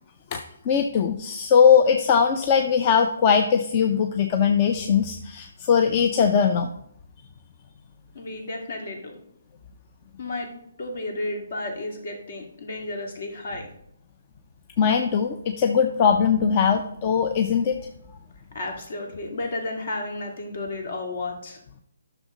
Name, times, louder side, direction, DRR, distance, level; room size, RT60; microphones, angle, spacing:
voice 1, 0.3-6.7 14.8-17.8, left 7 dB, 30° left, 5 dB, 0.6 m, -20 dB
voice 2, 8.1-9.2 10.2-10.5 10.8-13.7 18.5-21.6, left 2 dB, 55° left, 2 dB, 2.4 m, -32 dB
10.5 x 6.5 x 3.9 m, 0.73 s
hypercardioid pair, 155°, 0 cm